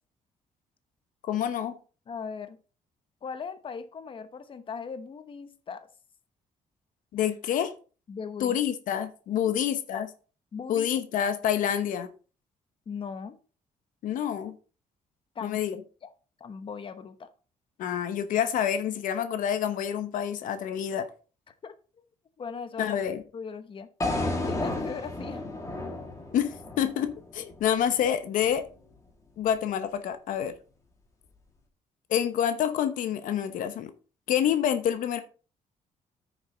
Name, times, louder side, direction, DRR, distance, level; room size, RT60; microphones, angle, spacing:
voice 1, 1.3-1.8 7.1-7.7 8.4-10.1 10.7-12.1 14.0-14.5 15.4-15.8 17.8-21.1 22.8-23.2 26.3-28.6 29.4-30.5 32.1-33.9 34.3-35.2, left 9 dB, 80° left, 10 dB, 1.0 m, -27 dB
voice 2, 2.1-2.6 3.2-5.9 8.1-8.6 9.4-10.0 10.5-11.0 12.9-13.4 15.3-15.6 16.0-16.1 16.4-17.3 21.5-22.1 22.4-23.0 23.3-23.9 24.4-25.4, left 6 dB, 40° left, 10 dB, 1.0 m, -39 dB
sound 1, 24.0-28.1, left 2 dB, 25° left, 2.4 m, -33 dB
9.5 x 6.8 x 3.9 m, 0.37 s
cardioid pair, 115°, 13 cm